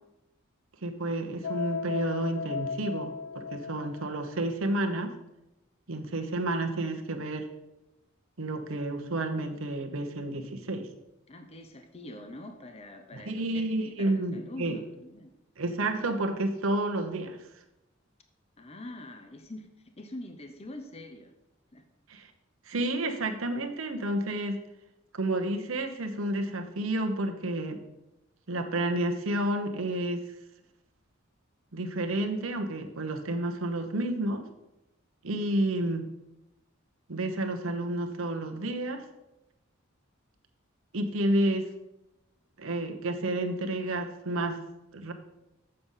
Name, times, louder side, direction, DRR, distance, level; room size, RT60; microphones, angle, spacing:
voice 1, 0.8-5.1 5.9-7.5 8.4-10.9 13.1-14.8 15.6-17.4 22.1-22.3 22.7-24.6 25.1-27.8 28.5-30.2 31.7-34.5 35.2-36.0 37.1-39.1 40.9-41.7 42.6-44.6 44.9-45.1, right 1 dB, 85° right, 5 dB, 1.0 m, -30 dB
sound 1, 1.4-4.2, left 5 dB, 65° left, 0.3 m, -36 dB
voice 2, 11.3-15.3 18.6-21.3 21.7-21.8, left 1 dB, 30° left, 6 dB, 0.8 m, -44 dB
7.7 x 6.9 x 5.6 m, 0.92 s
head